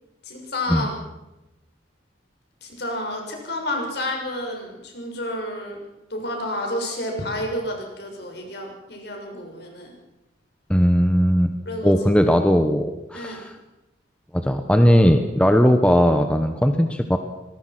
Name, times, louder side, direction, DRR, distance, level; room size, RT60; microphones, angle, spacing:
voice 1, 0.2-0.9 2.6-5.8 6.1-9.9 11.6-12.4 13.1-13.4, left 1 dB, 60° left, 2 dB, 6.7 m, -30 dB
voice 2, 10.7-11.5 11.8-13.5 14.3-17.2, equal, 5° left, 6 dB, 1.2 m, -18 dB
25.0 x 20.5 x 6.1 m, 0.96 s
head